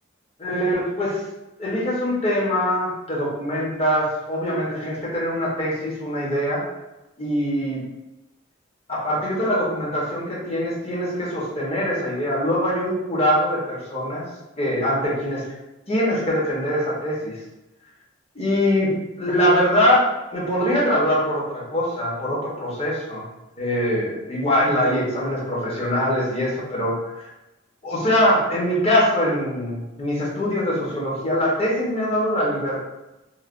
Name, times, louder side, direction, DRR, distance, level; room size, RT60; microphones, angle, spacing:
voice 1, 0.4-1.2 1.6-6.6 7.2-7.8 8.9-14.2 14.6-15.4 15.9-17.4 18.3-20.0 20.3-23.3 23.6-27.2 27.8-32.9, equal, 30° left, -5 dB, 0.8 m, -23 dB
3.1 x 2.1 x 2.4 m, 0.99 s
head